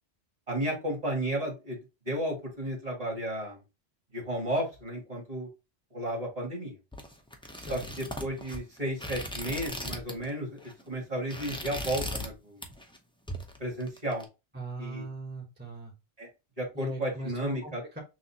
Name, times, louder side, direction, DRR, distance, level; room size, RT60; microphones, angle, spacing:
voice 1, 0.5-1.8 2.1-3.6 4.1-5.5 5.9-6.7 7.7-12.6 13.6-14.3 14.8-15.0 16.2-16.3 16.6-17.8, right 1 dB, 35° right, -2 dB, 1.9 m, -33 dB
sound 1, 6.9-10.3 10.6-10.8 11.1-12.3 12.6-13.0 13.3-14.2, equal, 5° left, 0.6 m, -38 dB
voice 2, 7.5-7.9 14.5-15.9 16.7-18.0, right 1 dB, 10° right, -3 dB, 1.0 m, -39 dB
6.1 x 2.6 x 2.8 m, 0.27 s
omnidirectional pair, 1.1 m